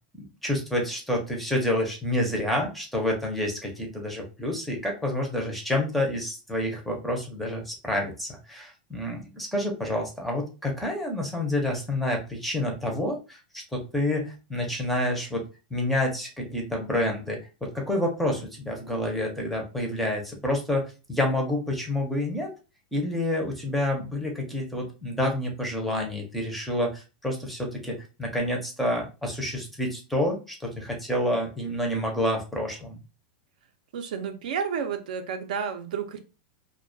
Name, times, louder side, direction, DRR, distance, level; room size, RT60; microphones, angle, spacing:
voice 1, 0.1-22.5 22.9-33.0, left 1 dB, ahead, 1 dB, 0.5 m, -28 dB
voice 2, 33.9-36.2, right 7 dB, 75° right, 7 dB, 0.5 m, -31 dB
2.3 x 2.1 x 2.5 m, 0.31 s
supercardioid pair, 165°, 4 cm